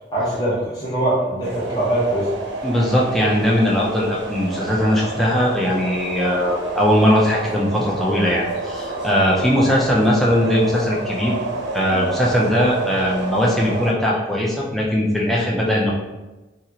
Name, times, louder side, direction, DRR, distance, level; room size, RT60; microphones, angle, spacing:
voice 1, 0.1-2.3, right 1 dB, 20° left, -9 dB, 0.9 m, -22 dB
sound 1, 1.4-13.9, right 3 dB, 85° right, 0.5 m, -29 dB
voice 2, 2.6-11.3 11.7-15.9, equal, ahead, -4 dB, 0.4 m, -19 dB
2.8 x 2.4 x 2.8 m, 1.1 s
head